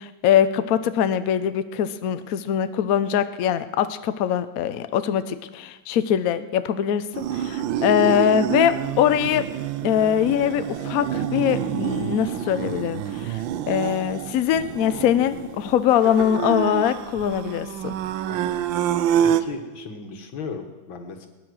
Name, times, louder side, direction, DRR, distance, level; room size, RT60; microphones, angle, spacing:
voice 1, 0.0-9.5 9.8-17.9, left 10 dB, 65° left, 11 dB, 0.9 m, -22 dB
sound 1, 7.1-19.4, right 10 dB, 80° right, 1.4 m, -27 dB
voice 2, 18.3-18.6 19.2-21.3, left 5 dB, 90° left, 5 dB, 2.2 m, -36 dB
20.0 x 10.0 x 6.2 m, 1.2 s
omnidirectional pair, 2.1 m